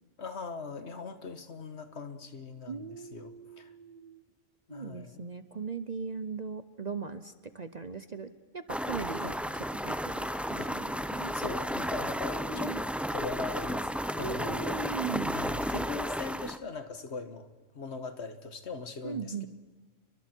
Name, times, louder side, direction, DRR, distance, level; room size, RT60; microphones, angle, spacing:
voice 1, 0.2-3.7 4.7-5.2 9.2-9.3 10.6-10.9 11.3-12.8 13.1-14.8 15.3-17.5 17.7-19.5, left 4 dB, 55° left, 9 dB, 1.7 m, -40 dB
voice 2, 2.7-4.2 4.7-9.3 9.7-10.8 11.1-11.3 12.3-12.8 14.2-15.3 19.0-19.5, right 5 dB, 40° right, 11 dB, 0.8 m, -39 dB
sound 1, 8.7-16.6, equal, ahead, 0.4 m, -33 dB
29.5 x 23.5 x 4.5 m, 1.4 s
omnidirectional pair, 1.3 m